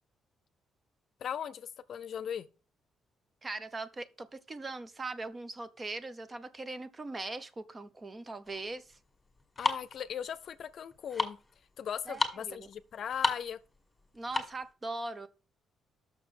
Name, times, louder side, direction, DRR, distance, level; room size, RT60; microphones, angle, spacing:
voice 1, 1.2-2.5 9.6-11.4 11.8-13.6, left 8 dB, 60° left, 0.6 m, -38 dB
voice 2, 3.4-9.0 12.1-12.7 14.1-15.3, right 3 dB, 30° right, 0.8 m, -40 dB
sound 1, 8.5-14.7, left 3 dB, 15° left, 2.0 m, -35 dB
6.5 x 5.9 x 6.5 m
cardioid pair, 90°, 0 cm